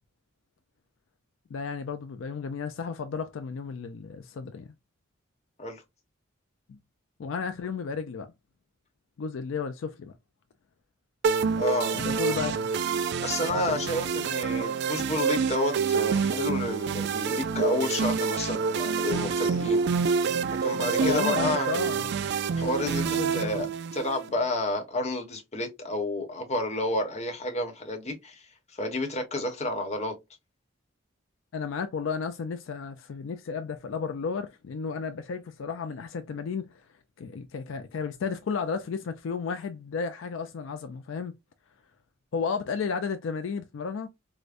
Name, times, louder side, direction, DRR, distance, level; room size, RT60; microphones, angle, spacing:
voice 1, 1.5-4.7 6.7-6.8 7.2-8.3 9.2-10.1 11.9-12.7 13.7-13.8 21.0-22.3 23.0-23.7 31.5-36.8 37.2-41.3 42.3-44.1, left 5 dB, 70° left, 0.4 m, -33 dB
sound 1, 11.2-24.3, right 5 dB, 60° right, 0.3 m, -27 dB
voice 2, 11.6-12.5 13.2-19.8 20.6-21.7 22.6-23.7 23.9-28.4 28.8-30.1, left 1 dB, 35° left, 1.0 m, -30 dB
4.8 x 2.1 x 2.5 m
head